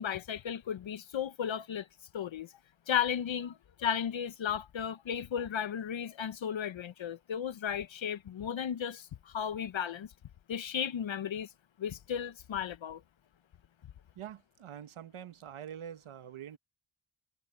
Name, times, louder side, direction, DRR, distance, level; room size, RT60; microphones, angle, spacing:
voice 1, 0.0-1.9 2.1-2.5 2.9-10.1 10.5-11.5 11.8-13.0, left 8 dB, 65° left, 0.9 m, -34 dB
voice 2, 14.1-16.6, right 9 dB, 90° right, 1.3 m, -45 dB
cardioid pair, 60°, 48 cm